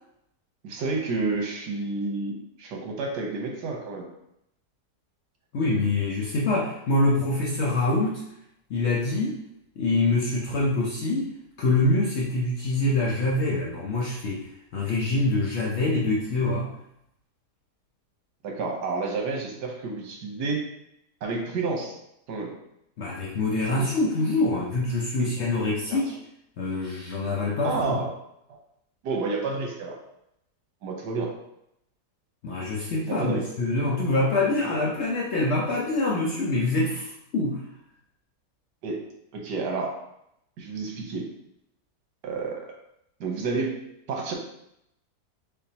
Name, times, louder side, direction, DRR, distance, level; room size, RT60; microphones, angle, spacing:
voice 1, 0.6-4.1 18.4-20.6 21.2-22.0 22.3-22.5 23.8-23.9 25.2-25.3 25.9-26.0 27.6-28.1 28.5-28.6 29.0-30.0 30.8-31.3 33.0-33.5 38.8-39.0 39.3-40.0 40.6-41.3 42.2-42.6 43.2-43.8 44.1-44.3, right 3 dB, 85° right, 1 dB, 1.5 m, -30 dB
voice 2, 5.5-8.2 8.7-9.4 9.8-11.3 11.6-16.7 23.0-26.1 26.6-28.0 32.4-37.6, left 2 dB, 60° left, -3 dB, 0.7 m, -25 dB
4.5 x 3.6 x 2.8 m, 0.78 s
omnidirectional pair, 1.8 m